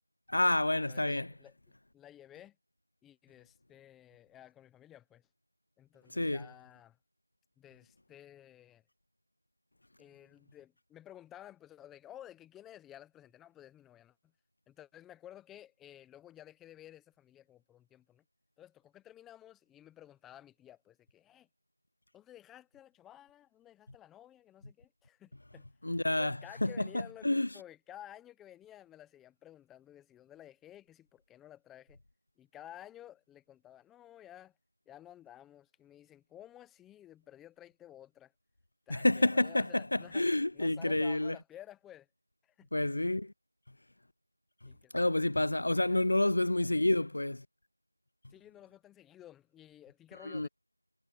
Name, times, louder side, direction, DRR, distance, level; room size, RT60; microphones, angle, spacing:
voice 1, 0.3-1.3 6.1-6.5 25.8-27.6 38.9-41.4 42.7-43.3 44.6-47.5 50.2-50.5, left 1 dB, 40° left, 0.7 m, -29 dB
voice 2, 0.9-1.5 1.9-2.6 3.0-5.3 5.8-7.0 7.6-8.8 10.0-14.3 14.7-18.2 18.6-21.5 22.1-25.7 26.2-32.0 32.4-34.5 34.9-38.3 38.9-40.2 40.5-42.1 42.4-42.7 44.7-45.1 45.9-46.0 48.3-50.5, left 12 dB, ahead, 0.8 m, -54 dB
figure-of-eight pair, 175°, 0 cm